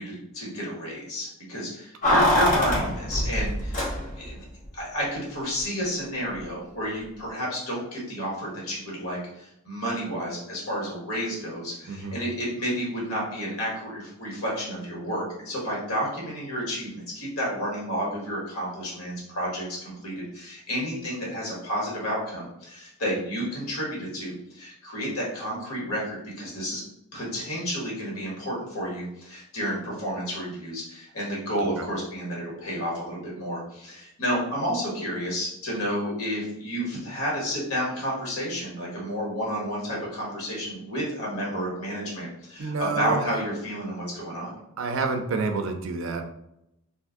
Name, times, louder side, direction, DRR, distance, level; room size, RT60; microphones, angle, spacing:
voice 1, 0.0-3.8 4.2-4.4 4.7-26.8 27.1-44.5, equal, 80° left, -4 dB, 1.4 m, -31 dB
Keys jangling, 2.0-4.4 4.6-4.7, equal, 35° left, 0.7 m, -24 dB
voice 2, 11.9-12.2 31.8-31.9 42.6-43.2 44.8-46.2, right 4 dB, 60° right, 5 dB, 0.4 m, -28 dB
2.6 x 2.5 x 3.6 m, 0.82 s
head